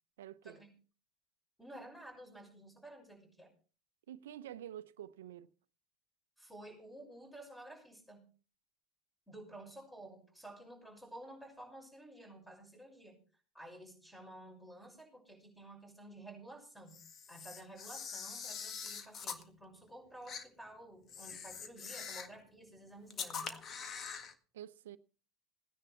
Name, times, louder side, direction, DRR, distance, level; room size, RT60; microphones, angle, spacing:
voice 1, 0.2-0.6 4.1-5.5 24.5-25.0, right 11 dB, 80° right, 0.8 m, -48 dB
voice 2, 1.6-3.5 6.4-8.3 9.3-13.2 13.5-17.0 17.3-23.7, right 1 dB, 5° left, 6.2 m, -52 dB
Camera, 16.9-19.4 20.3-20.4 21.1-22.4 23.1-24.3, left 6 dB, 40° left, 1.8 m, -44 dB
17.0 x 10.0 x 4.5 m
hypercardioid pair, 80°, 0 cm